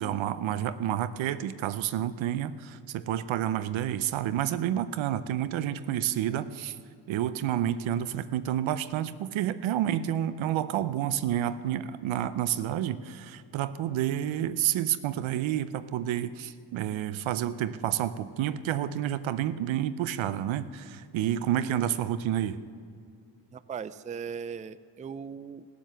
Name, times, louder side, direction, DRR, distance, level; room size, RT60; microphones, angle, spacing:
voice 1, 0.0-6.8 7.1-22.6, right 11 dB, 85° right, 15 dB, 0.6 m, -29 dB
voice 2, 23.5-25.7, right 6 dB, 20° right, 16 dB, 0.4 m, -38 dB
17.0 x 7.6 x 6.7 m, 2.2 s
supercardioid pair, 50°, 46 cm